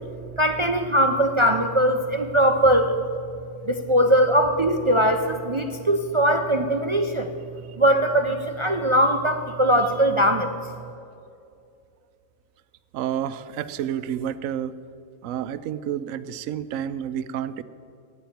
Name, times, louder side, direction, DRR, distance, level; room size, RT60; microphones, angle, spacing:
voice 1, 0.4-3.0 3.7-7.3 7.8-10.5, equal, 40° right, 6 dB, 0.4 m, -20 dB
voice 2, 12.9-14.7 15.2-17.6, right 9 dB, 85° right, 14 dB, 1.0 m, -29 dB
11.5 x 9.3 x 9.2 m, 2.5 s
omnidirectional pair, 1.4 m